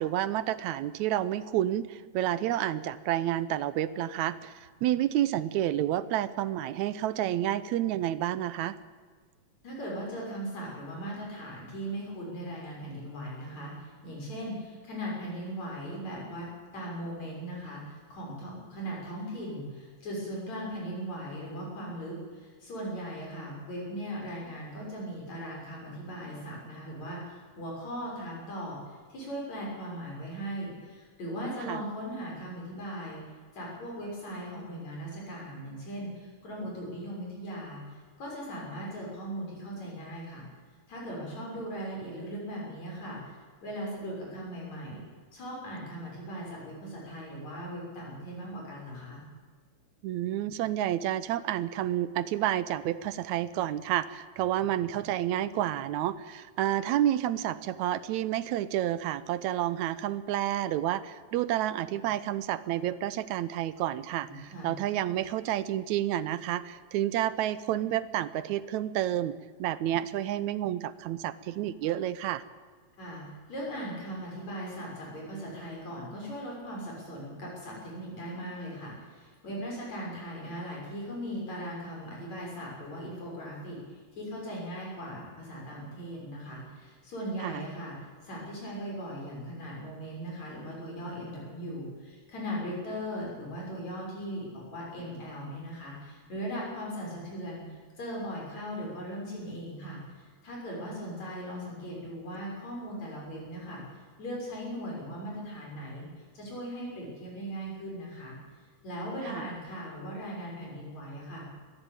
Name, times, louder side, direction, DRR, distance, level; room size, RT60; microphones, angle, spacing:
voice 1, 0.0-4.5 4.8-8.8 31.7-31.8 50.0-72.4 87.4-87.7 109.2-109.5, right 12 dB, 80° right, 15 dB, 2.1 m, -30 dB
voice 2, 9.6-33.2 33.5-40.4 40.9-43.4 43.6-45.0 45.3-49.2 64.2-64.7 73.0-73.2 73.5-88.0 88.2-97.6 98.0-100.0 100.4-103.8 104.2-106.0 106.3-108.4 108.8-111.5, equal, 70° left, -3 dB, 7.7 m, -38 dB
21.0 x 14.0 x 9.0 m, 1.5 s
omnidirectional pair, 3.3 m